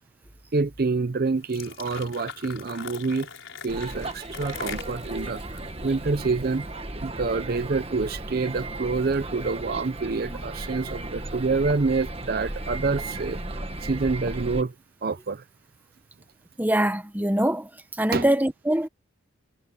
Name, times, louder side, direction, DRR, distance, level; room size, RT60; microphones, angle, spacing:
voice 1, 0.5-3.3 3.6-6.6 7.0-13.4 13.8-14.7 15.0-15.4 18.1-18.3, right 4 dB, 45° right, 0.5 m, -27 dB
sound 1, 1.4-6.6, left 6 dB, 70° left, 4.7 m, -41 dB
sound 2, 3.7-14.6, right 2 dB, 30° right, 1.5 m, -35 dB
voice 2, 16.6-17.7 18.0-18.9, right 1 dB, 10° right, 1.1 m, -23 dB
head